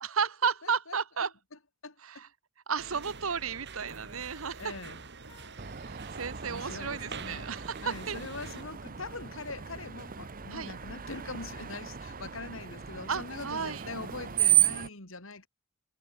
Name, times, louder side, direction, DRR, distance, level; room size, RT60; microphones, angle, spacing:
voice 1, 0.0-1.3 2.0-2.3 2.7-4.7 5.9-8.2 10.5-10.7 13.1-13.8, right 6 dB, 85° right, 1.3 m, -33 dB
voice 2, 0.6-1.3 1.8-2.2 4.0-4.2 4.6-5.0 6.4-7.5 7.8-15.5, left 3 dB, 70° left, 3.5 m, -43 dB
sound 1, 2.8-8.6, right 4 dB, 60° right, 3.3 m, -46 dB
Trumpet, 3.3-11.5, left 3 dB, 20° left, 4.5 m, -61 dB
Screech, 5.6-14.9, right 11 dB, 45° right, 0.9 m, -33 dB
head